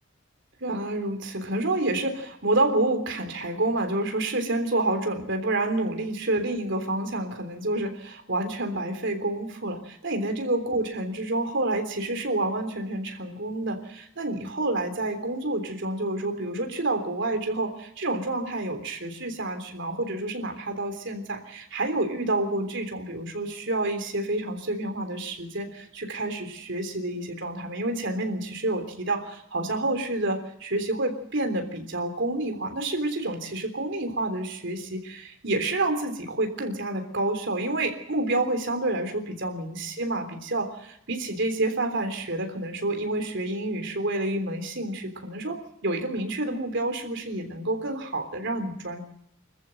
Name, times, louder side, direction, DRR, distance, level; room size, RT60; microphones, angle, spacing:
voice 1, 0.6-49.0, right 2 dB, 65° right, 6 dB, 3.5 m, -28 dB
25.5 x 14.5 x 7.8 m, 0.77 s
head